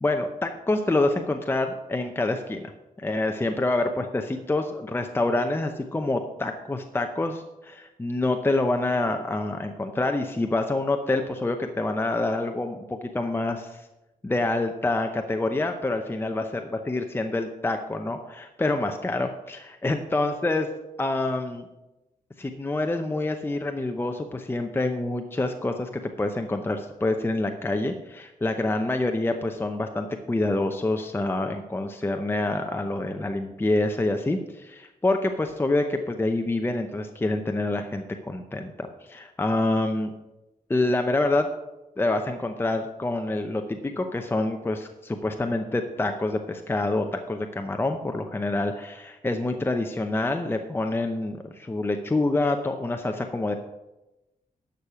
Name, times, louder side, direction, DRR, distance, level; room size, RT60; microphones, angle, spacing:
voice 1, 0.0-2.7 3.0-13.8 14.2-16.4 16.8-20.7 21.0-21.6 22.4-40.1 40.7-41.5 42.0-53.5, left 2 dB, 15° left, 5 dB, 0.7 m, -27 dB
12.0 x 6.6 x 5.7 m, 0.98 s
wide cardioid pair, 125°, 15 cm